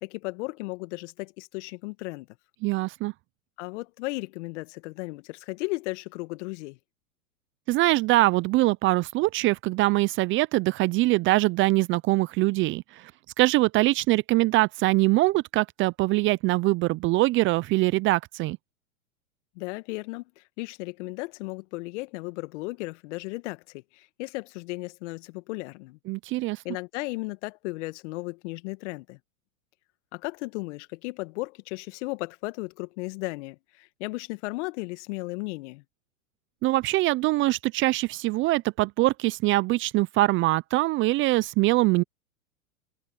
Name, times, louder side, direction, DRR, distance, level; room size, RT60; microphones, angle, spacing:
voice 1, 0.0-2.3 3.6-6.8 19.6-26.0 26.6-29.2 30.1-35.8, left 23 dB, 50° left, 1.8 m, -35 dB
voice 2, 2.6-3.1 7.7-13.1 13.4-18.6 26.1-26.6 36.6-42.0, right 19 dB, 25° right, 0.6 m, -23 dB
hypercardioid pair, 110°, 45 cm